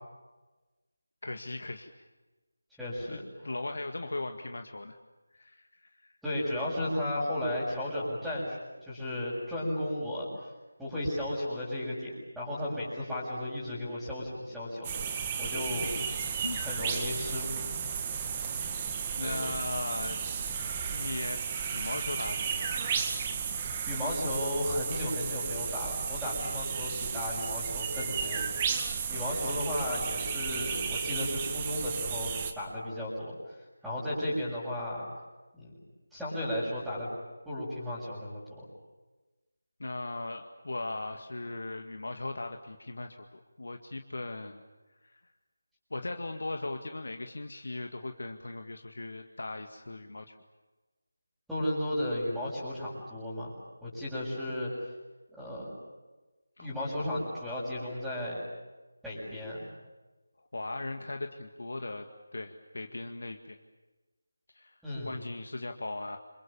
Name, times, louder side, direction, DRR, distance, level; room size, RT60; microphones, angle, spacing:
voice 1, 1.2-1.9 3.1-4.9 5.3-6.1 15.6-16.1 16.4-16.6 18.5-18.6 19.2-20.2 20.9-21.4 21.7-22.9 39.8-44.6 45.0-45.2 45.9-50.4 56.6-56.7 60.4-63.6 64.5-64.8 65.1-66.2, left 2 dB, 60° left, 5 dB, 2.0 m, -38 dB
voice 2, 2.8-3.2 6.2-10.3 10.8-14.9 15.4-15.9 16.6-17.7 19.2-19.4 23.9-28.4 29.1-32.3 32.6-33.6 33.8-35.0 35.5-35.7 36.1-37.1 37.5-38.6 51.5-53.5 53.8-54.7 55.4-55.7 56.6-58.4 59.0-59.7 64.8-65.2, left 1 dB, ahead, -13 dB, 7.0 m, -34 dB
sound 1, 14.8-32.5, right 6 dB, 20° right, 2.1 m, -34 dB
29.0 x 27.0 x 7.3 m, 1.2 s
figure-of-eight pair, 160°, 0 cm